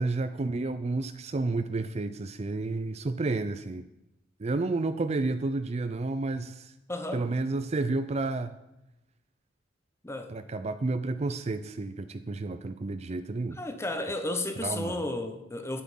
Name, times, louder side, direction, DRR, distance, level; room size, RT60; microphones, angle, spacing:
voice 1, 0.0-3.8 4.4-6.7 7.1-8.6 10.3-13.6 14.6-15.0, right 3 dB, 35° right, 10 dB, 0.4 m, -31 dB
voice 2, 6.9-7.3 10.0-10.3 13.6-15.8, left 2 dB, 15° left, 7 dB, 0.8 m, -33 dB
9.4 x 8.3 x 5.5 m, 0.90 s
head